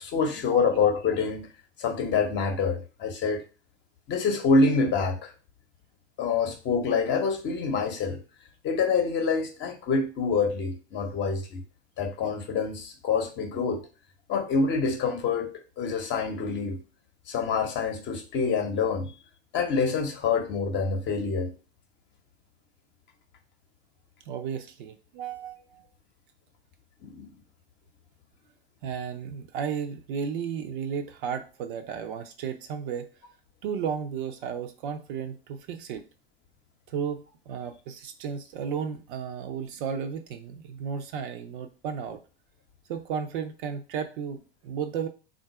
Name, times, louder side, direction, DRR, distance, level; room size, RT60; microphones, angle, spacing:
voice 1, 0.0-1.5 1.8-3.4 4.1-5.3 6.2-8.2 8.6-11.6 12.0-13.8 14.3-16.8 17.3-19.1 19.5-21.5 27.0-27.3, left 4 dB, 35° left, 0.9 m, -26 dB
voice 2, 24.3-25.8 28.8-33.1 33.6-36.1 36.9-42.2 42.9-45.1, right 7 dB, 50° right, 0.6 m, -34 dB
3.8 x 2.5 x 4.7 m
figure-of-eight pair, 80°, 32 cm